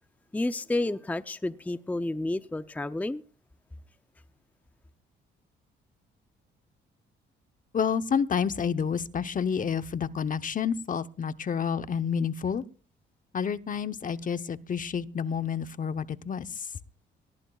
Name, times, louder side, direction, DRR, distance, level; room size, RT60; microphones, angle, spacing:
voice 1, 0.3-3.2, left 2 dB, 10° left, 0.6 m, -30 dB
voice 2, 7.7-12.6 13.3-16.7, left 7 dB, 40° left, 0.9 m, -29 dB
23.5 x 18.0 x 2.4 m
cardioid pair, 90°, 20 cm